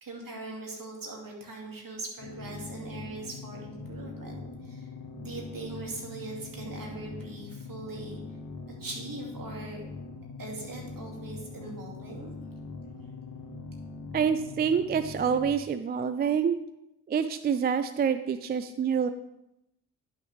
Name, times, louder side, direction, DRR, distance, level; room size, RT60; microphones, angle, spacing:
voice 1, 0.0-4.9 5.2-8.2 8.8-9.8 10.4-12.3, right 2 dB, 40° right, 0 dB, 2.6 m, -41 dB
sound 1, 2.2-15.5, left 3 dB, 50° left, 1.8 m, -42 dB
voice 2, 14.1-16.6 17.1-19.1, right 7 dB, 25° right, 11 dB, 0.3 m, -27 dB
10.0 x 6.2 x 3.5 m, 0.85 s
hypercardioid pair, 40°, 50 cm